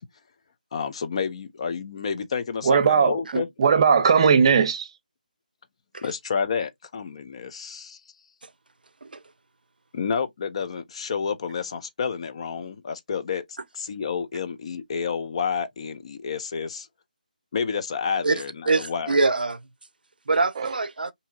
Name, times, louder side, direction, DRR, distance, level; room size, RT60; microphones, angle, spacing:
voice 1, 0.7-3.5 6.0-8.0 9.9-13.4 13.7-16.9 17.5-19.2, left 6 dB, 40° left, 0.4 m, -30 dB
voice 2, 2.7-4.9, right 6 dB, 40° right, 0.6 m, -19 dB
voice 3, 18.2-19.6 20.3-21.1, right 3 dB, 85° right, 0.4 m, -24 dB
2.7 x 2.7 x 2.3 m
figure-of-eight pair, 160°, 5 cm